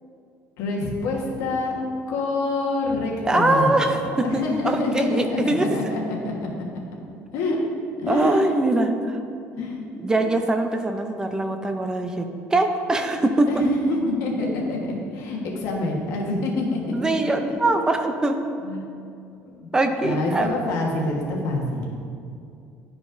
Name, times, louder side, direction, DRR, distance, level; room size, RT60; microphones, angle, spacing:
voice 1, 0.6-1.7 2.1-3.7 4.2-6.5 7.3-7.6 8.0-8.5 9.6-9.9 10.2-10.3 13.5-17.1 17.6-17.8 18.6-18.8 19.4-19.7 20.0-21.8, left 2 dB, 80° left, -1 dB, 1.3 m, -26 dB
voice 2, 3.2-5.7 8.1-9.2 9.9-13.7 16.9-18.4 19.7-20.6, right 2 dB, 15° right, 6 dB, 0.5 m, -22 dB
11.5 x 4.9 x 2.6 m, 2.5 s
cardioid pair, 145°, 5 cm